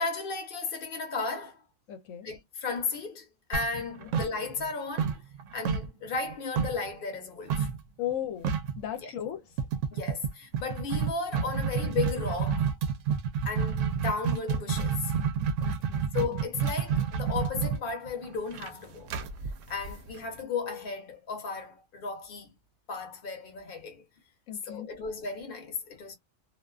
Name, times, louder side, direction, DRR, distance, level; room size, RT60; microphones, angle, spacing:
voice 1, 0.0-1.6 2.2-5.2 5.5-7.7 9.0-9.1 9.9-12.7 13.4-15.1 16.1-19.1 19.7-22.5 22.9-24.0 24.7-26.1, left 4 dB, 45° left, 1.0 m, -34 dB
voice 2, 1.9-2.3 4.0-4.1 8.0-8.5 8.8-9.5 15.6-16.1 24.5-24.9, left 11 dB, 80° left, 1.0 m, -36 dB
sound 1, 3.5-4.7 5.0-6.9 7.5-7.8 8.1-8.2 8.4-8.8 9.6-20.4, right 6 dB, 75° right, 0.9 m, -29 dB
2.6 x 2.2 x 2.3 m
omnidirectional pair, 1.4 m